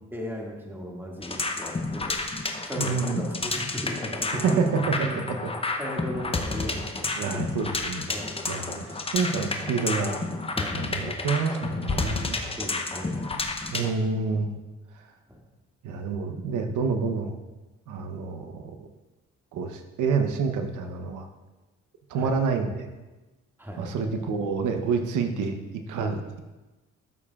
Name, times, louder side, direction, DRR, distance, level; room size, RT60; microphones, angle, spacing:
voice 1, 0.1-4.6 4.9-5.2 5.8-7.4 8.1-8.6 10.5-11.0 12.6-13.4 15.3-15.4 22.2-22.3 23.6-23.8, equal, 5° right, -2 dB, 2.0 m, -37 dB
sound 1, 1.2-13.9, left 3 dB, 20° left, 0.7 m, -31 dB
voice 2, 2.8-3.3 4.3-5.5 7.2-8.0 8.5-10.2 10.7-12.4 13.7-14.6 15.8-17.4 17.9-18.9 19.5-21.3 22.1-22.9 23.8-25.5 25.9-26.4, right 5 dB, 80° right, 6 dB, 0.9 m, -28 dB
13.5 x 7.3 x 2.4 m, 1.1 s
cardioid pair, 90°, 30 cm